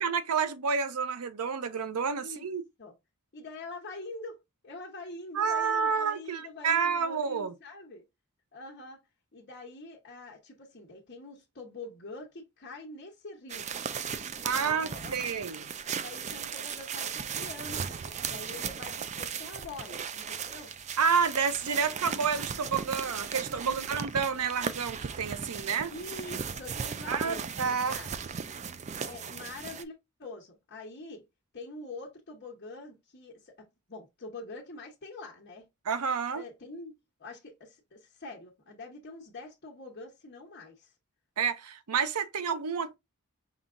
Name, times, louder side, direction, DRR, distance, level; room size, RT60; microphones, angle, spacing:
voice 1, 0.0-2.6 5.3-7.5 14.4-15.7 21.0-25.9 27.1-28.0 35.9-36.4 41.4-43.0, right 6 dB, 90° right, 0.6 m, -29 dB
voice 2, 3.3-8.0 8.5-9.0 9.3-13.6 14.5-15.2 16.0-20.7 23.6-24.0 25.9-28.1 29.0-31.2 31.5-35.6 36.3-36.9 37.2-40.9, left 2 dB, 45° left, 1.1 m, -45 dB
sound 1, 13.5-29.8, right 6 dB, 30° right, 0.4 m, -37 dB
5.5 x 2.4 x 3.6 m
head